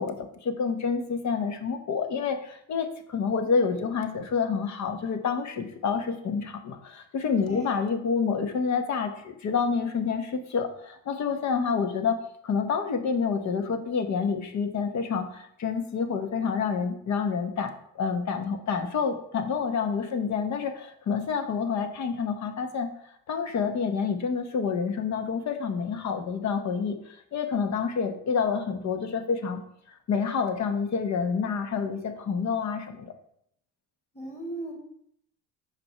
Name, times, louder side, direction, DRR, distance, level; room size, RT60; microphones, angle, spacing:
voice 1, 0.0-12.2 12.4-22.9 23.3-29.6 30.1-33.1, left 5 dB, 55° left, 7 dB, 1.1 m, -28 dB
voice 2, 7.5-7.8 34.1-34.7, right 2 dB, 20° left, 0 dB, 2.7 m, -37 dB
6.1 x 5.1 x 4.3 m, 0.70 s
supercardioid pair, 70°, 34 cm